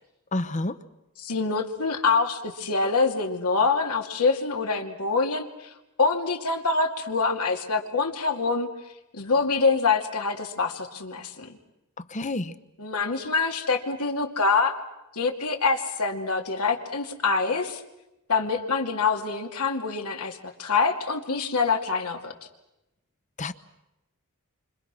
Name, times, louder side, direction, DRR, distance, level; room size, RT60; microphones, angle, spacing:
voice 1, 0.3-0.8 12.1-12.5 23.4-23.5, left 2 dB, 35° left, 13 dB, 0.9 m, -28 dB
voice 2, 1.2-5.7 6.0-8.7 9.1-11.6 12.8-14.7 15.1-17.8 18.3-22.3, left 4 dB, 80° left, 3 dB, 2.5 m, -25 dB
29.0 x 25.5 x 6.2 m, 0.93 s
head